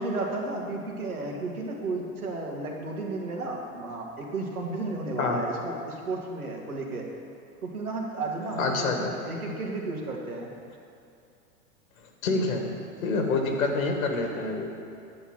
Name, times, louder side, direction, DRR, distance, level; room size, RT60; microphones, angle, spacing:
voice 1, 0.0-7.1 7.6-10.5, right 2 dB, 90° right, -1 dB, 2.1 m, -33 dB
voice 2, 8.6-9.1 12.2-12.6 13.0-14.7, left 3 dB, 70° left, 3 dB, 2.0 m, -26 dB
9.9 x 6.6 x 7.6 m, 2.5 s
hypercardioid pair, 100°, 42 cm